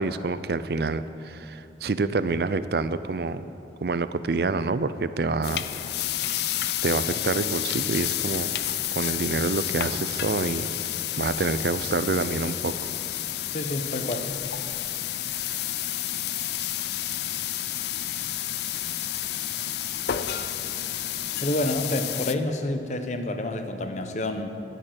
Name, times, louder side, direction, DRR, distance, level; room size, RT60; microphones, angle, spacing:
voice 1, 0.0-3.5 3.8-5.6 6.8-8.6 8.9-10.7 11.2-12.8, right 3 dB, 60° right, 13 dB, 0.5 m, -27 dB
sound 1, 5.4-22.3, left 11 dB, 65° left, 0.5 m, -30 dB
voice 2, 13.5-14.3 21.4-24.5, left 1 dB, 40° left, 7 dB, 0.9 m, -28 dB
11.0 x 11.0 x 7.4 m, 2.7 s
head